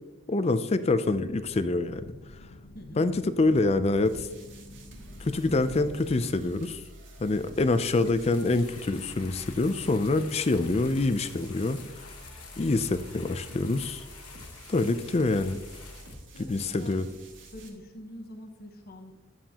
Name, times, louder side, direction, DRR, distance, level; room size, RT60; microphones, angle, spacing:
voice 1, 0.3-2.1 3.0-4.3 5.2-6.8 7.2-11.8 12.6-14.0 14.7-15.6 16.5-17.1, left 2 dB, 30° left, 12 dB, 0.4 m, -26 dB
sound 1, 1.1-6.1, left 1 dB, 70° left, 0.8 m, -48 dB
voice 2, 2.7-3.1 16.3-17.0 17.5-19.5, left 1 dB, 45° left, 2 dB, 1.1 m, -45 dB
sound 2, 4.0-17.7, right 1 dB, 55° right, 1.8 m, -48 dB
sound 3, 7.8-16.1, left 5 dB, 90° left, 1.1 m, -48 dB
11.0 x 7.3 x 2.9 m, 1.1 s
head